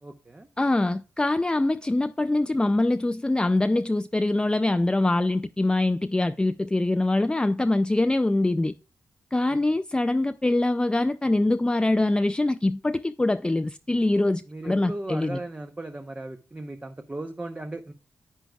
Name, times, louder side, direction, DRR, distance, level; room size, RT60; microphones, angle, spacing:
voice 1, 0.0-0.5 9.5-9.8 14.5-17.9, right 2 dB, 20° right, 0.8 m, -37 dB
voice 2, 0.6-8.7 9.3-15.4, left 2 dB, 15° left, 0.4 m, -24 dB
9.9 x 9.0 x 2.3 m
cardioid pair, 55°, 6 cm